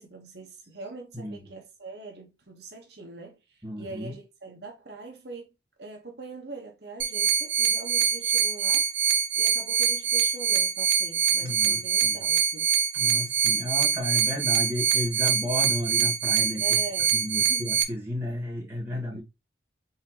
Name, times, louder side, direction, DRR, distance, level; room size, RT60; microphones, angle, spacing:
voice 1, 0.0-5.5 5.8-8.9 9.4-12.7 16.6-17.7 18.9-19.2, right 3 dB, 60° right, 1.0 m, -43 dB
voice 2, 1.1-1.5 3.6-4.2 11.4-12.3 12.9-16.8 17.1-19.2, left 1 dB, 10° right, 1.8 m, -33 dB
sound 1, 7.0-17.8, right 6 dB, 90° right, 1.0 m, -24 dB
4.1 x 4.0 x 2.8 m
head